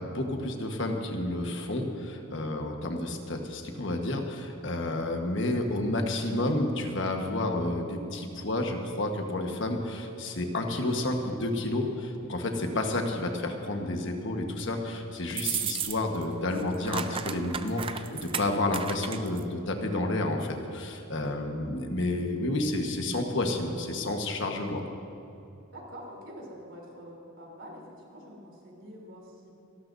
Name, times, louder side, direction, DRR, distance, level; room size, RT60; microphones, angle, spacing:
voice 1, 0.0-24.8, left 1 dB, 60° left, 3 dB, 1.3 m, -30 dB
sound 1, 15.3-16.2 16.5-19.4, right 7 dB, 25° right, 0.4 m, -34 dB
voice 2, 25.7-29.5, equal, 65° right, -2 dB, 3.5 m, -46 dB
28.5 x 12.5 x 2.7 m, 2.8 s
head